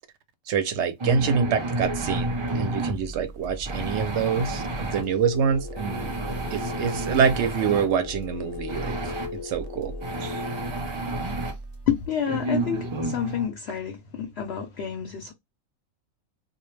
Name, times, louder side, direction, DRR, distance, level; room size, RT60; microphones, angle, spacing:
voice 1, 0.5-6.1 6.5-9.9 10.2-10.3, right 6 dB, 65° right, 0.8 m, -26 dB
sound 1, 1.0-3.0 3.7-5.0 5.8-7.9 8.7-9.3 10.0-11.5 12.3-13.5, right 2 dB, 50° right, 0.3 m, -30 dB
sound 2, 1.8-12.1, right 2 dB, 25° right, 0.8 m, -40 dB
sound 3, 5.0-10.7, left 7 dB, 85° left, 1.1 m, -38 dB
voice 2, 11.9-15.3, left 8 dB, 60° left, 0.7 m, -29 dB
2.2 x 2.1 x 3.0 m
omnidirectional pair, 1.4 m